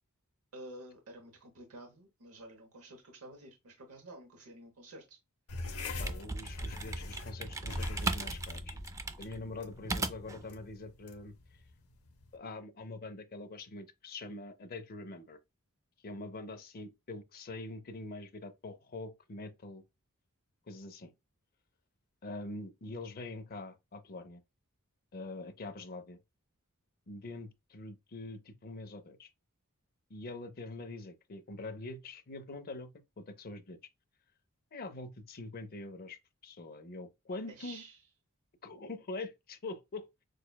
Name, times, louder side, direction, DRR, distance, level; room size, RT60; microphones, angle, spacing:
voice 1, 0.5-5.2 37.6-38.0, right 1 dB, 80° right, 0.9 m, -50 dB
sound 1, 5.5-12.4, left 2 dB, 85° left, 0.8 m, -43 dB
voice 2, 5.8-8.8 9.2-11.6 12.3-15.4 16.0-19.8 20.7-21.1 22.2-24.4 25.1-26.2 27.1-29.3 30.1-32.9 33.2-33.8 34.7-37.8 38.6-40.2, left 2 dB, 45° left, 0.6 m, -44 dB
sound 2, 6.0-10.4, right 3 dB, 15° right, 0.3 m, -37 dB
6.3 x 2.2 x 2.2 m
head